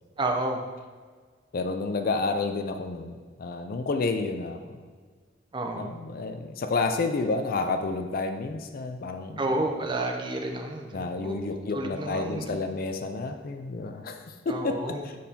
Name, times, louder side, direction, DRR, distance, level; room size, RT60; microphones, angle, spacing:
voice 1, 0.2-0.6 5.5-5.9 9.4-12.6 14.5-15.0, right 2 dB, 25° right, 3 dB, 0.6 m, -30 dB
voice 2, 1.5-4.6 5.8-9.4 10.9-15.2, left 3 dB, 50° left, 6 dB, 0.4 m, -30 dB
6.4 x 5.4 x 2.8 m, 1.5 s
head